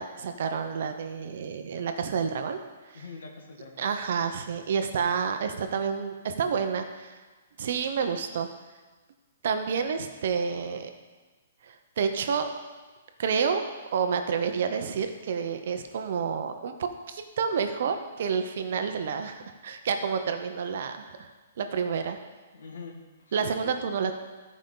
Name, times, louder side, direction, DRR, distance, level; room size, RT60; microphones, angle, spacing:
voice 1, 0.0-2.6 2.9-3.0 3.8-7.2 7.6-8.5 9.4-10.9 11.6-12.5 13.2-22.2 23.3-24.1, right 6 dB, 50° right, 7 dB, 0.7 m, -29 dB
voice 2, 2.9-3.9 22.5-23.7, left 4 dB, 80° left, 2 dB, 1.6 m, -45 dB
14.0 x 5.1 x 3.8 m, 1.3 s
hypercardioid pair, 175°, 0 cm